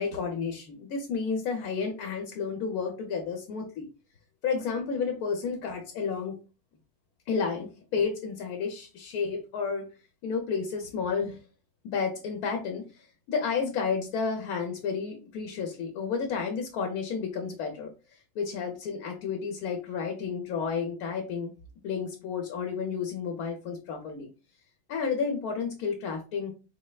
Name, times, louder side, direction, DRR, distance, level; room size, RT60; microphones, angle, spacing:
voice 1, 0.0-3.9 4.4-6.4 7.3-9.9 10.2-11.4 11.8-21.5 21.8-24.3 24.9-26.5, left 5 dB, 90° left, 3 dB, 1.2 m, -31 dB
4.2 x 3.2 x 2.3 m, 0.33 s
omnidirectional pair, 1.5 m